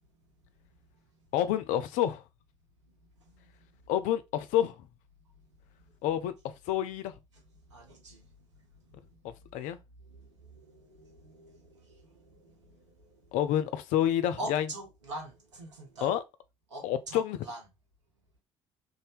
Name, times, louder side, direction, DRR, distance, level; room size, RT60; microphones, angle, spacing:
voice 1, 0.0-1.1 2.9-3.9 5.2-6.0 7.3-13.4 14.4-16.1 16.7-17.6, right 1 dB, 80° right, 0.8 m, -46 dB
voice 2, 1.3-2.2 3.9-4.8 6.0-7.1 9.2-9.8 13.3-14.7 16.0-16.2 16.8-17.4, left 11 dB, 55° left, 0.4 m, -28 dB
2.7 x 2.1 x 3.3 m
figure-of-eight pair, 50°, 15 cm